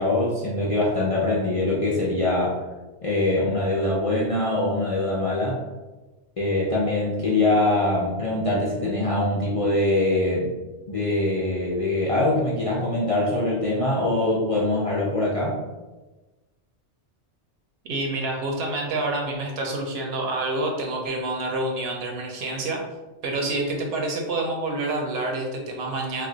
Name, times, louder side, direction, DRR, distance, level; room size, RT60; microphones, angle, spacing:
voice 1, 0.0-2.6 3.0-5.6 6.4-10.5 10.9-15.6, left 2 dB, 50° left, -6 dB, 0.4 m, -23 dB
voice 2, 17.8-22.8 23.2-26.3, right 2 dB, 65° right, 1 dB, 0.8 m, -28 dB
2.4 x 2.2 x 3.7 m, 1.2 s
omnidirectional pair, 1.2 m